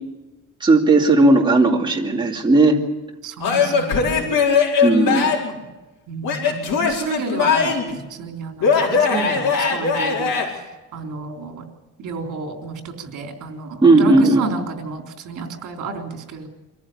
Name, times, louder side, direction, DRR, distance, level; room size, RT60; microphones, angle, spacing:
voice 1, 0.6-2.8 4.8-5.3 13.8-14.4, right 2 dB, 15° right, -1 dB, 2.5 m, -15 dB
voice 2, 3.2-4.3 6.1-7.7 8.1-11.6 12.0-16.5, right 4 dB, 65° right, 3 dB, 3.7 m, -31 dB
Male speech man speaking / Yell / Laughter, 3.4-5.6 6.2-8.0 8.6-10.5, left 5 dB, 75° left, 4.9 m, -19 dB
24.5 x 14.5 x 8.6 m, 1.1 s
cardioid pair, 155°, 33 cm